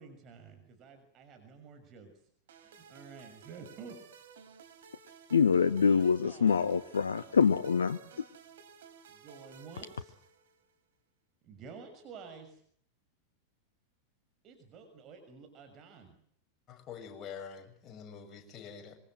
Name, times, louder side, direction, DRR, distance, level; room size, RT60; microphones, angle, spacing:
voice 1, 0.0-2.1 2.6-4.0 5.8-6.6 9.1-10.2 11.4-12.6 14.4-16.1, right 5 dB, 35° right, 7 dB, 6.6 m, -51 dB
sound 1, 2.5-10.8, right 6 dB, 60° right, 4.7 m, -55 dB
voice 2, 5.3-8.0, left 6 dB, 70° left, 13 dB, 1.2 m, -25 dB
voice 3, 16.7-19.0, left 7 dB, 30° left, 6 dB, 7.5 m, -46 dB
26.5 x 25.0 x 7.8 m, 0.62 s
figure-of-eight pair, 90°, 0 cm